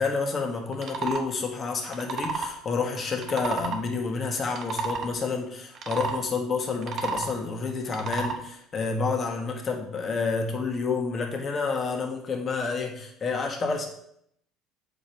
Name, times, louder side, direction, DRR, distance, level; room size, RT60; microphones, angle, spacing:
voice 1, 0.0-13.9, left 4 dB, 40° left, 2 dB, 1.7 m, -29 dB
sound 1, 0.7-1.2 1.9-2.5 3.2-3.8 4.4-5.1 5.8-6.2 6.7-7.3 7.9-8.4, right 4 dB, 50° right, 1.2 m, -31 dB
7.8 x 5.3 x 4.6 m, 0.71 s
hypercardioid pair, 75°, 0 cm